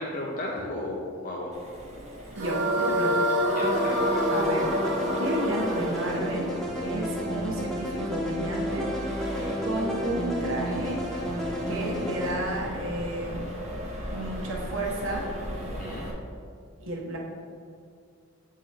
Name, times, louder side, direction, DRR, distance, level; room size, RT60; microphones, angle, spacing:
voice 1, 0.0-1.5 3.5-4.0 15.8-16.1, left 1 dB, 45° left, -2 dB, 0.6 m, -34 dB
Accelerating revving vroom, 1.5-16.1, equal, 35° right, 1.0 m, -38 dB
sound 1, 2.4-7.6, equal, 60° right, 1.2 m, -27 dB
voice 2, 2.4-3.2 4.3-4.7 5.2-6.5 6.8-8.9 9.6-11.0 11.7-13.4 14.1-15.3 16.8-17.2, right 1 dB, 80° right, -2 dB, 0.8 m, -32 dB
sound 2, 3.6-12.3, equal, ahead, 0.7 m, -32 dB
8.0 x 3.7 x 3.3 m, 2.3 s
head